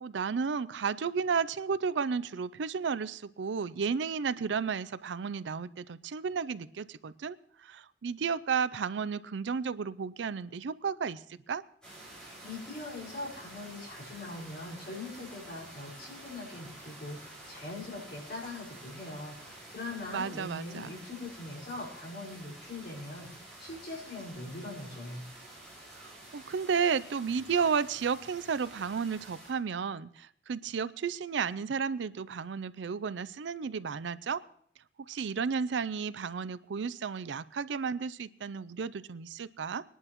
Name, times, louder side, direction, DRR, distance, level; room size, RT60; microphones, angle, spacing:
voice 1, 0.0-11.6 20.1-21.0 26.0-34.4 35.1-39.8, right 6 dB, 75° right, 17 dB, 0.4 m, -33 dB
sound 1, 11.8-29.5, right 1 dB, 5° left, 5.5 m, -50 dB
voice 2, 12.2-25.2, left 2 dB, 60° left, -4 dB, 4.8 m, -42 dB
22.0 x 11.0 x 3.0 m, 0.62 s
head